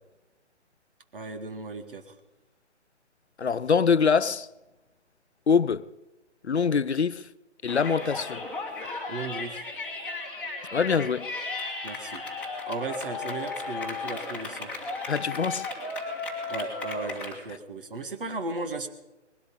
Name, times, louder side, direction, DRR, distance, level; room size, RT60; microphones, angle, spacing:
voice 1, 1.1-2.1 9.1-9.6 11.8-12.2 12.6-14.7 16.5-18.9, right 3 dB, 50° right, 1.9 m, -35 dB
voice 2, 3.4-4.5 5.5-5.9 6.4-7.3 7.6-8.4 10.7-11.3 15.1-15.7, left 6 dB, 65° left, 0.6 m, -24 dB
Yell, 7.7-17.4, left 3 dB, 5° left, 1.9 m, -35 dB
20.0 x 12.5 x 5.4 m
figure-of-eight pair, 140°, 36 cm